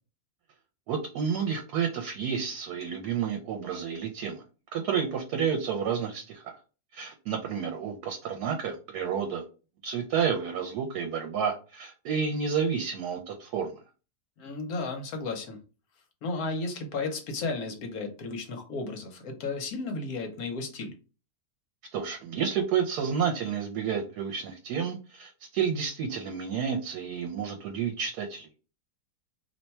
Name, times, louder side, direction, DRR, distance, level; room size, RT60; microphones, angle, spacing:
voice 1, 0.9-4.4 4.7-6.6 6.9-9.4 9.8-13.7 21.9-28.5, right 7 dB, 80° right, 3 dB, 1.2 m, -30 dB
voice 2, 14.4-15.6 16.2-20.9, left 3 dB, 70° left, 4 dB, 1.2 m, -34 dB
2.9 x 2.2 x 4.1 m, 0.34 s
omnidirectional pair, 1.7 m